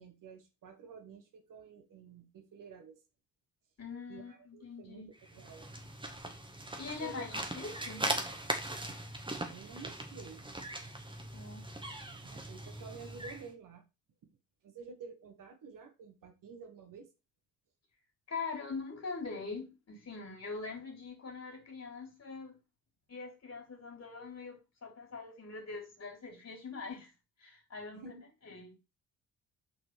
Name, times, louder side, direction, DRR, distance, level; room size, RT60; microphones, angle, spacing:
voice 1, 0.0-3.0 4.1-5.7 7.0-7.3 8.9-9.0 9.5-10.4 12.2-13.8 14.6-17.1 27.9-28.3, right 5 dB, 45° right, 1.6 m, -50 dB
voice 2, 3.8-5.1 6.8-8.1 11.3-11.6 18.3-22.6 23.1-27.1 27.4-28.2 28.4-28.8, left 4 dB, 35° left, 3.6 m, -43 dB
sound 1, 5.2-13.5, right 1 dB, 10° right, 1.8 m, -40 dB
7.0 x 5.1 x 4.7 m
figure-of-eight pair, 45°, 45 cm